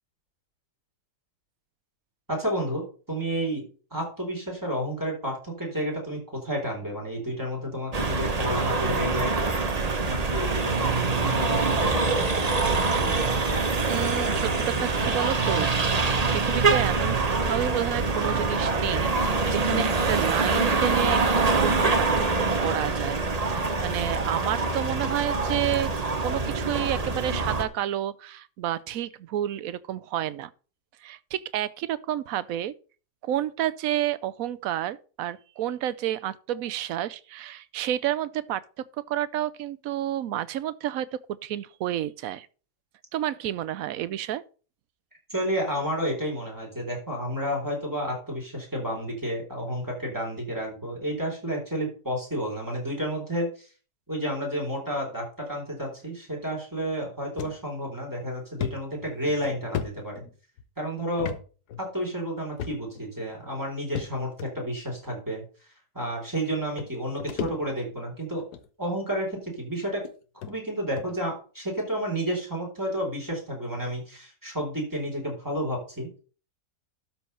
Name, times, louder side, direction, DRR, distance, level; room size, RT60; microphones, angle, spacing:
voice 1, 2.3-3.6 3.9-9.6 10.0-12.3 45.3-53.7 54.1-60.2 60.8-61.3 61.8-65.4 65.9-68.4 68.8-70.0 70.3-76.1, equal, 10° right, 4.0 m, -31 dB
sound 1, 7.9-27.6, right 3 dB, 30° right, 0.9 m, -25 dB
voice 2, 13.9-15.7 16.3-25.9 26.2-30.5 31.0-32.7 33.2-41.1 41.4-42.5 43.1-44.4, right 12 dB, 70° right, 1.0 m, -30 dB
sound 2, 57.4-57.6 58.0-58.1 58.6-60.6 61.2-61.4 61.7-61.8 62.6-63.1 64.0-64.5 65.4-65.5 66.4-66.5 66.8-68.0 68.4-68.7 69.5-69.6 70.0-70.1 70.4-70.5 71.0-71.2, left 8 dB, 75° left, 1.4 m, -35 dB
12.5 x 4.6 x 5.6 m
omnidirectional pair, 1.7 m